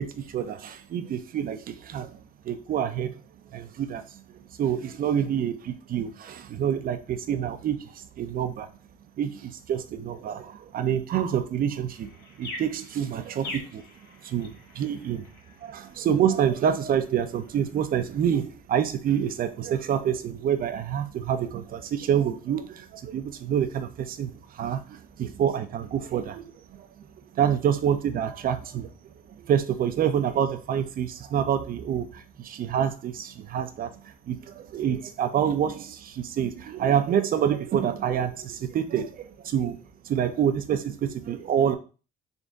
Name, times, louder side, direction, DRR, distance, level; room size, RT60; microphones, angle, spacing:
voice 1, 0.0-2.2 2.4-3.1 3.5-8.7 9.2-12.1 12.4-13.8 14.2-15.3 15.6-26.5 26.8-27.0 27.3-28.9 29.4-33.9 34.3-39.8 40.0-41.8, right 9 dB, 50° right, 9 dB, 0.5 m, -27 dB
sound 1, 11.9-18.1, left 2 dB, 60° left, 1.4 m, -45 dB
3.8 x 3.4 x 2.5 m, 0.34 s
cardioid pair, 95°, 19 cm